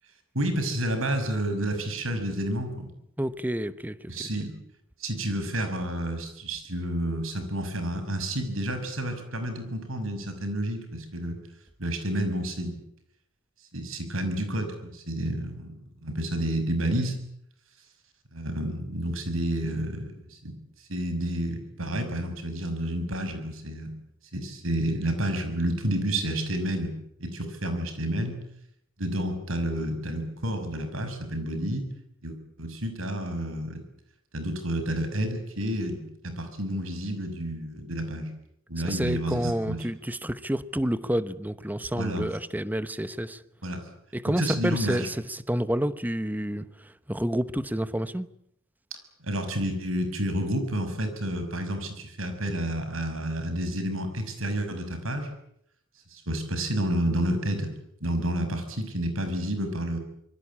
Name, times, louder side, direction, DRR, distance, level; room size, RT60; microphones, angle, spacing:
voice 1, 0.3-2.9 4.1-4.5 5.0-11.4 11.8-12.8 13.7-15.7 16.0-17.1 18.3-20.5 20.9-23.9 24.3-26.9 27.2-28.3 29.0-31.8 32.2-33.8 34.3-38.3 38.7-39.9 41.9-42.3 43.6-43.8 44.4-45.1 49.2-55.3 56.1-57.7 58.0-60.0, right 1 dB, 75° right, 8 dB, 6.2 m, -30 dB
voice 2, 3.2-4.3 38.8-43.4 44.1-46.7 47.1-48.3, equal, 10° right, 14 dB, 1.0 m, -29 dB
26.0 x 22.5 x 8.7 m, 0.73 s
head